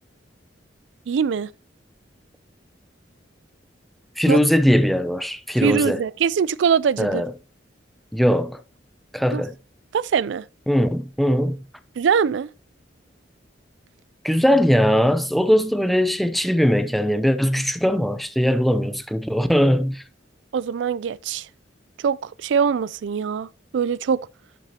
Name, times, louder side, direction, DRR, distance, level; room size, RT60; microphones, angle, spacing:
voice 1, 1.1-1.5 4.3-4.4 5.6-7.2 9.3-9.4 9.9-10.4 12.0-12.5 20.5-21.5 22.0-23.5 23.7-24.2, right 6 dB, 70° right, 0.3 m, -22 dB
voice 2, 4.2-6.0 7.0-7.3 8.1-8.6 9.1-9.5 10.7-11.6 14.2-20.0, equal, ahead, 0.5 m, -20 dB
11.5 x 6.1 x 2.8 m
head